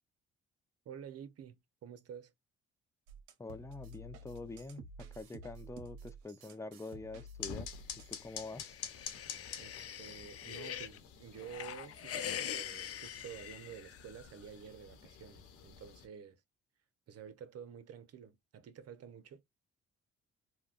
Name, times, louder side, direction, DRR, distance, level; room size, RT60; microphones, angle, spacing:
voice 1, 0.8-2.3 9.6-16.4 17.1-19.4, right 8 dB, 55° right, 0.8 m, -50 dB
sound 1, 3.1-8.3, right 1 dB, 85° right, 0.6 m, -51 dB
voice 2, 3.4-4.8 5.1-7.7 8.1-8.8, left 3 dB, 10° left, 0.5 m, -45 dB
sound 2, 7.4-16.1, left 8 dB, 85° left, 1.0 m, -49 dB
sound 3, 8.3-11.0 11.4-14.2, left 9 dB, 50° left, 0.7 m, -43 dB
3.5 x 2.2 x 2.4 m
hypercardioid pair, 55°, 30 cm